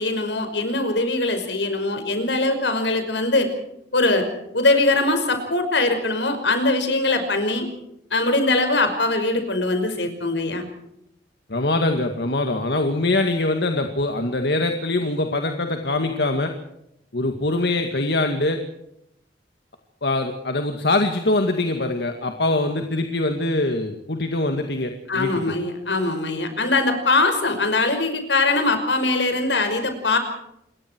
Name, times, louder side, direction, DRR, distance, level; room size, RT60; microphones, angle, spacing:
voice 1, 0.0-3.5 3.9-4.3 4.5-7.7 8.1-10.6 25.1-30.2, left 2 dB, 85° left, 7 dB, 5.5 m, -21 dB
voice 2, 11.5-16.5 17.1-18.6 20.0-25.3, left 2 dB, 65° left, 5 dB, 2.1 m, -23 dB
28.0 x 22.5 x 4.6 m, 0.79 s
head